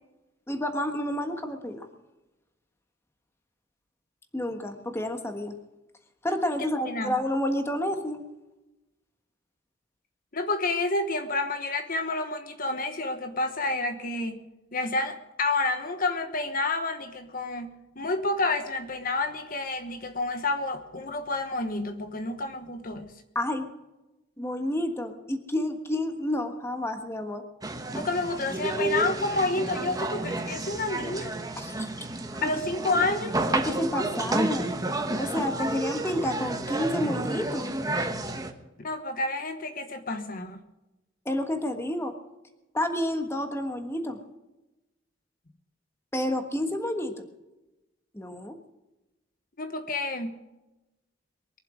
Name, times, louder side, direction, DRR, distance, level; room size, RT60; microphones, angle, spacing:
voice 1, 0.5-1.8 4.3-5.5 6.2-8.2 23.3-23.6 24.4-27.4 31.6-32.1 32.4-32.5 32.9-33.1 33.5-34.7 35.2-37.7 41.2-42.1 42.7-44.2 46.1-47.3 48.1-48.6, left 1 dB, 15° left, 6 dB, 1.4 m, -30 dB
voice 2, 6.8-7.1 10.3-14.4 14.7-23.1 27.9-31.3 32.4-33.3 38.8-40.6 49.6-50.3, left 2 dB, 50° left, 7 dB, 1.2 m, -29 dB
sound 1, 27.6-38.5, right 2 dB, 20° right, 1.1 m, -31 dB
23.0 x 7.8 x 6.3 m, 1.0 s
head